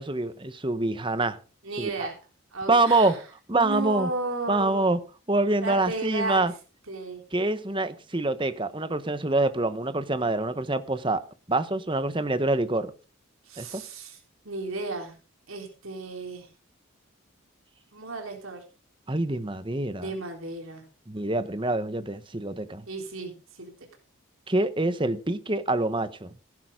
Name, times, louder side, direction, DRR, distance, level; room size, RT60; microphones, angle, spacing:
voice 1, 0.0-1.4 1.8-2.1 2.7-3.2 3.5-4.1 4.5-5.0 5.3-6.5 7.3-11.2 11.5-12.9 13.6-13.8 19.1-20.1 21.1-22.8 24.5-26.3, right 2 dB, 25° right, 1.1 m, -26 dB
voice 2, 1.6-2.1 2.5-3.1 3.5-4.9 5.6-6.5 6.9-7.2 13.5-14.2 14.5-15.1 15.5-16.4 17.9-18.6 20.0-20.8 22.9-23.3 23.6-23.7, right 3 dB, 75° right, 3.9 m, -33 dB
16.5 x 11.0 x 3.8 m
head